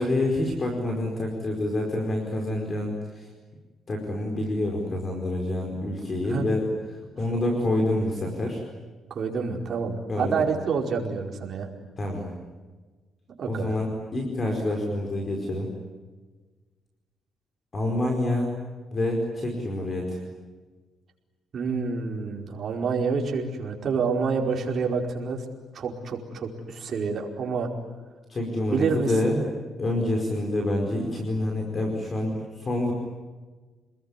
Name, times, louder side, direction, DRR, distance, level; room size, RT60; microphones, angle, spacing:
voice 1, 0.0-3.3 3.9-6.7 7.2-8.6 10.1-10.4 12.0-12.3 13.5-15.7 17.7-18.6 18.9-20.2 28.3-29.5 29.8-32.9, left 1 dB, 30° left, 2 dB, 5.0 m, -27 dB
voice 2, 9.1-11.7 13.4-13.7 21.5-25.4 25.7-27.7 28.7-29.1, right 5 dB, 50° right, 1 dB, 4.9 m, -28 dB
28.5 x 21.0 x 9.9 m, 1.3 s
cardioid pair, 135°, 0 cm